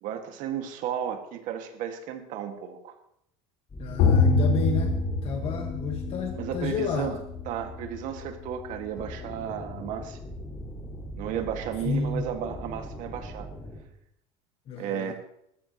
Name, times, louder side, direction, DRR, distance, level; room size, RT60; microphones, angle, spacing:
voice 1, 0.0-2.9 6.3-7.2 7.5-10.2 11.2-13.5 14.8-15.1, right 9 dB, 55° right, 5 dB, 2.0 m, -33 dB
sound 1, 3.7-8.0 9.0-13.8, equal, 20° left, 5.1 m, -42 dB
voice 2, 3.8-7.2 11.8-12.3 14.7-15.1, left 6 dB, 35° left, 2 dB, 1.7 m, -31 dB
sound 2, 4.0-13.0, left 3 dB, 60° left, 4.6 m, -28 dB
19.0 x 14.0 x 3.1 m, 0.76 s
cardioid pair, 145°, 16 cm